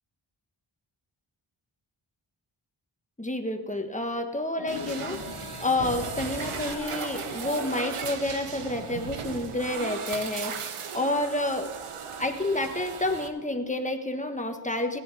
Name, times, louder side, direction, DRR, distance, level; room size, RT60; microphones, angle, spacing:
voice 1, 3.2-5.2 5.6-11.7 12.2-15.0, left 1 dB, 15° left, 5 dB, 1.4 m, -29 dB
sound 1, 4.5-9.0, left 8 dB, 50° left, 0.7 m, -42 dB
sound 2, 4.7-13.3, right 6 dB, 85° right, 1.0 m, -37 dB
16.0 x 10.5 x 4.1 m, 1.2 s
cardioid pair, 45°, 49 cm